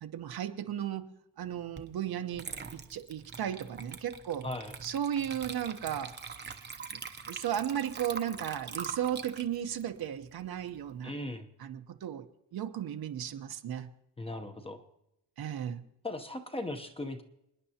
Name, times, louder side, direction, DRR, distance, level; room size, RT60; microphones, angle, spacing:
voice 1, 0.0-1.1 1.4-4.5 4.8-6.1 6.9-11.1 11.6-12.3 12.5-13.9 15.4-15.8, right 10 dB, 60° right, 7 dB, 1.0 m, -35 dB
Water / Liquid, 1.8-1.9 2.3-10.9, right 5 dB, 25° right, 0.8 m, -43 dB
voice 2, 4.4-4.7 11.0-11.5 14.2-14.8 16.0-17.2, left 1 dB, 15° left, 6 dB, 0.8 m, -38 dB
28.0 x 10.0 x 2.9 m, 0.83 s
cardioid pair, 160°, 42 cm